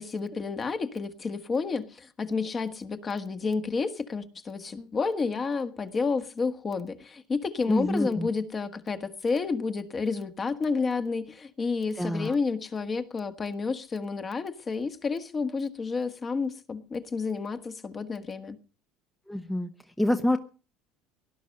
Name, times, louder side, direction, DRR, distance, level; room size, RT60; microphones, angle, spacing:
voice 1, 0.0-18.6, left 4 dB, 25° left, 9 dB, 1.4 m, -30 dB
voice 2, 7.7-8.3 12.0-12.3 19.3-19.7 20.0-20.4, left 1 dB, 5° left, 7 dB, 0.9 m, -26 dB
18.0 x 11.0 x 6.5 m, 0.38 s
cardioid pair, 130°, 0 cm